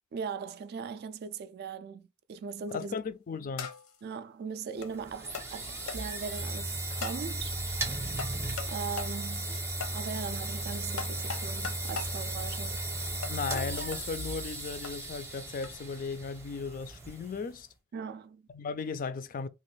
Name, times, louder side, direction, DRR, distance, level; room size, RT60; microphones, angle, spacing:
voice 1, 0.1-3.0 4.0-7.6 8.7-12.8 17.9-18.4, right 6 dB, 50° right, 0.3 m, -39 dB
sound 1, 2.7-3.0 3.6-4.0 4.8-4.9 5.3-5.5 5.9-6.0 7.0-7.2 8.2-8.7 9.0-9.1 9.8-10.0 11.0-12.1 13.2-14.0 14.8-14.9 15.6-15.8, left 5 dB, 85° left, 0.7 m, -39 dB
voice 2, 2.7-3.7 13.3-17.7 18.5-19.5, left 5 dB, 40° left, 0.3 m, -36 dB
sound 2, 4.8-17.6, right 2 dB, 10° right, 0.6 m, -36 dB
3.0 x 2.4 x 3.1 m
head